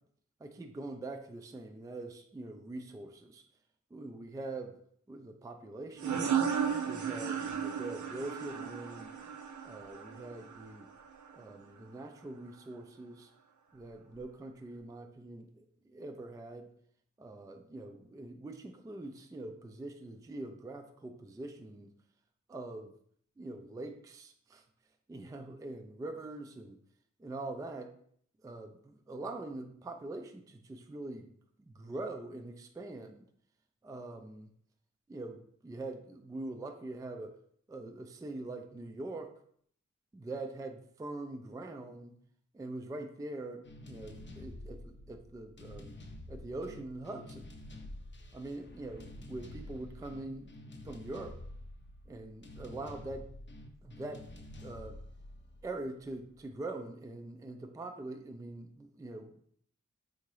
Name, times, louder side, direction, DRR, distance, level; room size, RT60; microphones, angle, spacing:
voice 1, 0.4-3.4 3.9-4.7 5.1-6.4 6.8-9.1 9.6-10.9 11.3-13.3 13.7-16.7 17.2-21.9 22.5-22.9 23.4-24.6 25.1-26.8 27.2-27.9 28.4-31.3 31.6-33.3 33.8-34.5 35.1-37.4 37.7-39.3 40.1-42.1 42.5-46.0 46.3-47.5 48.3-50.5 50.8-51.4 52.1-53.3 53.8-54.2 54.6-55.0 55.6-59.4, right 2 dB, 10° right, 5 dB, 0.3 m, -43 dB
sound 1, 6.0-11.3, right 7 dB, 70° right, 0.5 m, -35 dB
sound 2, 43.6-56.4, left 1 dB, 40° left, 0.6 m, -49 dB
3.6 x 2.8 x 3.1 m, 0.63 s
cardioid pair, 45°, 30 cm